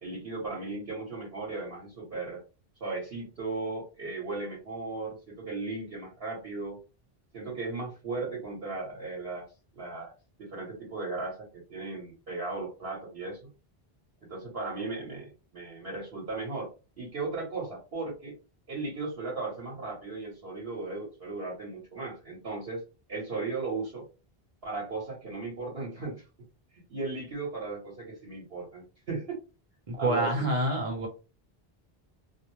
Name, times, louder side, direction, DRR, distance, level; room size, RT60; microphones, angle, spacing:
voice 1, 0.0-2.4 2.8-6.8 7.3-9.5 9.7-10.1 10.4-13.4 14.2-16.7 17.0-18.3 18.7-22.8 23.1-24.1 24.6-26.2 26.7-29.4 30.0-30.5, right 3 dB, 70° right, -4 dB, 1.2 m, -36 dB
voice 2, 29.9-31.1, right 1 dB, 35° right, 1 dB, 0.8 m, -27 dB
2.5 x 2.0 x 3.0 m, 0.32 s
omnidirectional pair, 1.0 m